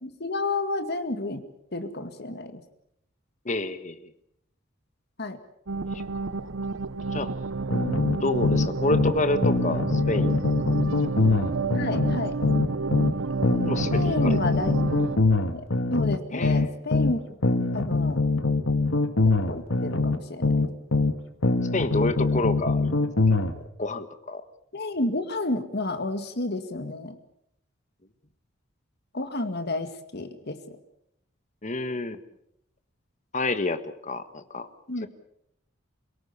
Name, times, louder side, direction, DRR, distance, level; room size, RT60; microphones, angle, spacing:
voice 1, 0.0-1.4 1.7-2.6 5.2-5.4 11.7-12.4 13.9-14.8 15.5-15.6 15.9-17.2 17.7-18.2 19.4-20.8 24.7-27.2 29.1-30.8 34.9-35.1, left 2 dB, 55° left, 8 dB, 2.2 m, -30 dB
voice 2, 3.4-4.1 7.1-7.3 8.2-10.8 11.3-11.4 13.6-14.4 16.3-16.7 21.7-22.9 23.3-23.4 23.8-24.4 31.6-32.2 33.3-34.7, left 2 dB, 40° left, 11 dB, 1.4 m, -29 dB
sound 1, 5.7-15.2, right 3 dB, 80° right, 0.9 m, -30 dB
sound 2, 7.7-9.2 9.4-13.1 13.4-17.1 17.4-21.1 21.4-23.5, left 3 dB, 85° left, 2.0 m, -23 dB
28.0 x 18.0 x 7.1 m, 0.75 s
head